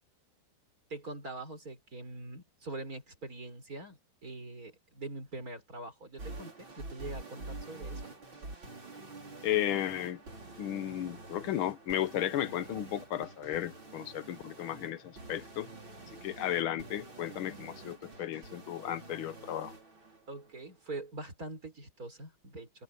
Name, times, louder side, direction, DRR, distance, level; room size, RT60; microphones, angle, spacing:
voice 1, 0.9-8.1 16.3-16.5 20.3-22.8, right 2 dB, 45° right, 6.2 m, -43 dB
sound 1, 6.2-20.2, right 2 dB, 70° right, 6.5 m, -47 dB
voice 2, 9.4-10.2 10.6-15.7 16.2-19.7, left 12 dB, 85° left, 1.8 m, -34 dB
omnidirectional pair, 2.2 m